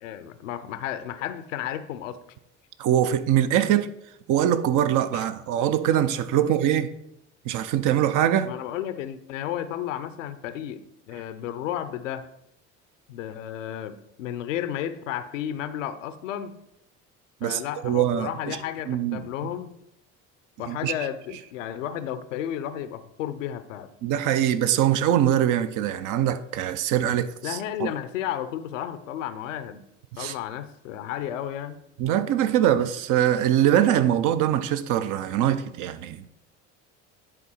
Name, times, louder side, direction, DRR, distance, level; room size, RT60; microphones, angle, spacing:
voice 1, 0.0-2.2 5.1-5.2 6.4-6.5 8.4-12.2 13.1-16.5 17.4-19.7 20.6-23.9 27.4-29.8 30.2-31.8, left 10 dB, 80° left, 0.6 m, -33 dB
voice 2, 2.8-3.9 4.3-6.9 7.4-8.5 17.4-18.6 18.9-19.2 20.7-20.9 24.0-27.9 30.1-30.3 32.0-36.3, right 11 dB, 55° right, 0.7 m, -23 dB
10.0 x 3.9 x 4.3 m
hypercardioid pair, 60°, 37 cm